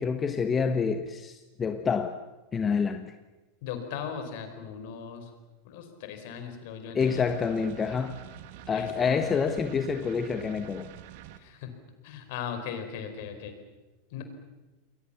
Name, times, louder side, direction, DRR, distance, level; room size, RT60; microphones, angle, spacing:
voice 1, 0.0-2.2 2.5-3.1 6.9-8.2 8.7-10.9, left 5 dB, 25° left, 1.4 m, -27 dB
voice 2, 3.6-5.3 5.6-7.2 8.7-9.2 11.4-11.7 12.0-13.5 14.1-14.2, left 7 dB, 60° left, 5.0 m, -38 dB
sound 1, 7.0-11.4, right 12 dB, 60° right, 1.9 m, -46 dB
29.0 x 22.0 x 7.3 m
hypercardioid pair, 90°, 0 cm